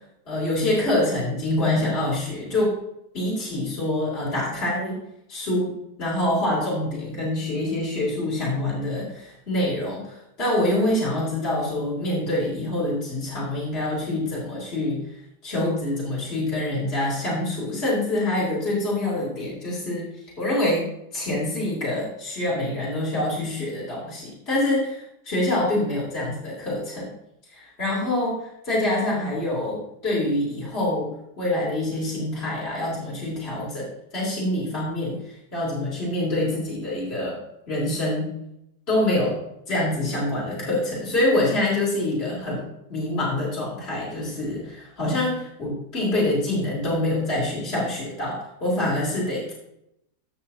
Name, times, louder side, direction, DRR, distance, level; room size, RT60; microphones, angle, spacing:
voice 1, 0.3-2.7 3.1-5.0 5.3-5.7 6.0-15.0 15.4-20.0 20.4-20.9 21.1-27.1 27.5-31.1 31.4-33.9 34.1-37.4 37.7-38.3 38.9-39.4 39.7-49.5, left 1 dB, 40° left, -6 dB, 3.7 m, -25 dB
15.5 x 6.8 x 2.8 m, 0.80 s
omnidirectional pair, 1.6 m